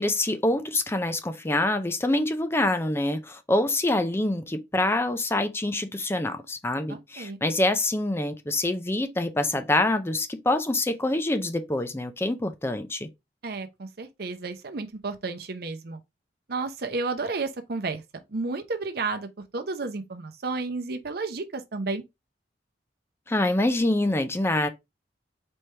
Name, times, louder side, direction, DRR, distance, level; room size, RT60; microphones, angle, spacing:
voice 1, 0.0-13.1 23.3-24.7, left 2 dB, 15° left, 0.5 m, -26 dB
voice 2, 6.9-7.4 13.4-16.0 16.5-22.0, right 3 dB, 60° right, 0.7 m, -32 dB
4.4 x 3.3 x 3.3 m
head